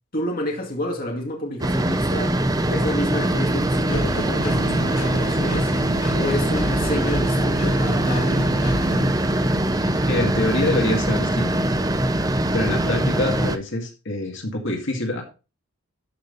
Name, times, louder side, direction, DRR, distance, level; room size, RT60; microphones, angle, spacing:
voice 1, 0.1-5.7 6.1-8.5, left 1 dB, 40° left, 2.2 m, -29 dB
sound 1, 1.6-13.6, right 1 dB, 15° right, 0.6 m, -22 dB
Engine, 3.9-9.1, left 1 dB, 70° left, 1.9 m, -31 dB
voice 2, 9.7-11.5 12.5-15.2, left 1 dB, 55° left, 2.2 m, -25 dB
13.0 x 5.9 x 4.0 m
head